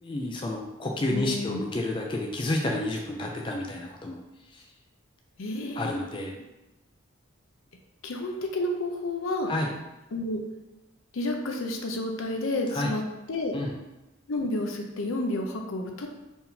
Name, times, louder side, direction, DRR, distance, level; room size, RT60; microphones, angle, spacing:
voice 1, 0.0-4.2 4.5-4.6 5.8-6.4 9.5-9.7 12.7-12.9 13.5-13.8, left 1 dB, 25° left, 1 dB, 0.4 m, -30 dB
voice 2, 1.1-1.6 5.4-5.9 8.0-9.5 10.1-10.4 11.1-13.0 13.3-13.5 14.3-16.1, left 2 dB, 80° left, 3 dB, 0.6 m, -30 dB
4.5 x 3.6 x 2.7 m, 1.0 s
head